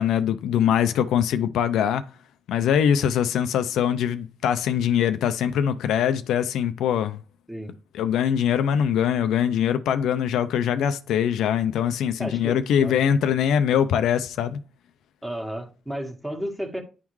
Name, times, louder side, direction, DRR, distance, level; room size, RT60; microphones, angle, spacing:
voice 1, 0.0-2.0 2.5-7.2 7.9-14.6, left 9 dB, 80° left, 0.5 m, -22 dB
voice 2, 12.2-13.0 15.2-16.8, equal, 10° right, 1.5 m, -33 dB
10.0 x 3.6 x 3.1 m
cardioid pair, 90°, 0 cm